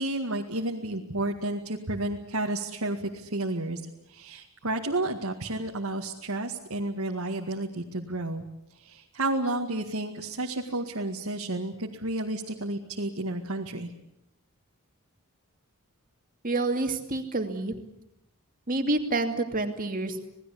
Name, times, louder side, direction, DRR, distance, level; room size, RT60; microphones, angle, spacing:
voice 1, 0.0-3.8 4.1-8.4 8.8-13.9, right 2 dB, 75° right, 0 dB, 2.1 m, -31 dB
voice 2, 16.4-17.8 18.7-20.2, right 2 dB, 40° right, 6 dB, 2.6 m, -28 dB
27.5 x 19.5 x 8.6 m, 0.83 s
head